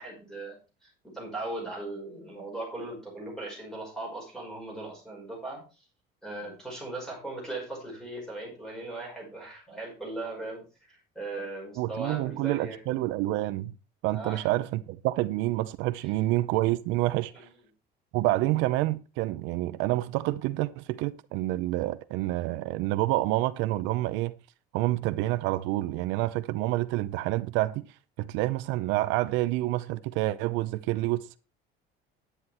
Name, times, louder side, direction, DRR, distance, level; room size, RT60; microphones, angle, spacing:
voice 1, 0.0-5.8 6.2-10.6 10.9-13.0 14.1-14.5 16.0-16.1 17.3-17.5, right 2 dB, 5° left, 5.4 m, -38 dB
voice 2, 11.8-13.7 14.0-17.3 18.1-24.3 24.7-27.9 28.2-31.4, right 17 dB, 80° right, 0.6 m, -28 dB
10.0 x 9.7 x 4.3 m
cardioid pair, 175°, 19 cm